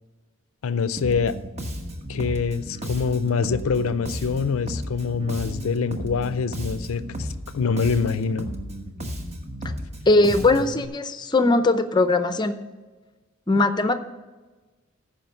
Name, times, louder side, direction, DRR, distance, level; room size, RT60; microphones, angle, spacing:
voice 1, 0.6-1.4 2.1-8.5, left 5 dB, 75° left, 14 dB, 0.5 m, -25 dB
Bass guitar, 1.0-10.9, equal, 30° right, 1.1 m, -34 dB
voice 2, 10.1-12.6 13.5-13.9, left 2 dB, 20° left, 9 dB, 0.6 m, -20 dB
14.0 x 5.2 x 5.6 m, 1.2 s
head